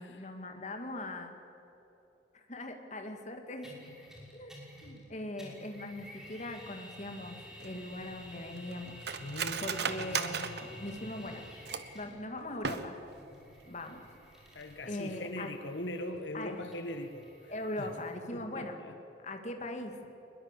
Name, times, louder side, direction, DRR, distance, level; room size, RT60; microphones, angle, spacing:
voice 1, 0.0-1.3 2.3-3.9 4.3-4.6 4.8-9.0 9.6-11.5 11.9-13.0 13.7-14.0 14.9-15.5 16.3-16.7 17.5-18.8 19.2-20.0, left 1 dB, 40° left, 5 dB, 2.3 m, -40 dB
sound 1, 3.6-5.1 5.4-12.2 13.1-18.1, equal, 5° right, 5.6 m, -51 dB
Cutlery silverware, 7.6-12.1 12.5-13.2 13.5-13.6 14.0-14.3 14.7-14.8, right 6 dB, 60° right, 1.3 m, -37 dB
voice 2, 9.2-10.5 14.5-17.9 18.3-19.0, left 1 dB, 75° left, 6 dB, 1.5 m, -41 dB
22.5 x 21.5 x 8.4 m, 3.0 s
head